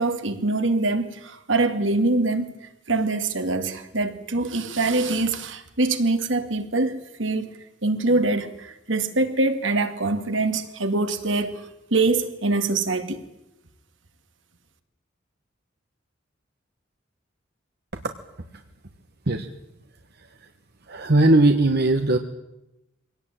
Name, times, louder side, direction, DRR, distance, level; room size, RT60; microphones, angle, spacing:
voice 1, 0.0-2.5 2.9-7.5 7.8-11.6 11.9-13.2, right 2 dB, 75° right, 2.3 m, -24 dB
voice 2, 20.9-22.2, right 2 dB, 55° right, 1.4 m, -18 dB
24.0 x 18.0 x 9.1 m
head